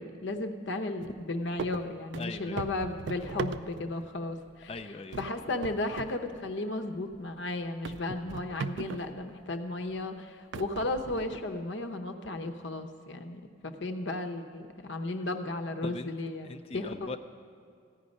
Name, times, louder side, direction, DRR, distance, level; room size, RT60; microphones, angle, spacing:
voice 1, 0.0-4.8 5.2-17.2, left 2 dB, 65° left, 6 dB, 0.8 m, -35 dB
sound 1, 1.0-1.2 1.6-4.1 4.5-4.8 5.1-6.2 6.5-6.6 7.1-7.2 7.8-9.2 9.9-10.0 10.5-11.6, right 5 dB, 65° right, 0.4 m, -39 dB
voice 2, 2.2-2.6 4.7-5.2 15.8-16.1 16.4-17.2, left 3 dB, 30° left, 9 dB, 0.4 m, -40 dB
15.0 x 5.3 x 9.8 m, 2.4 s
head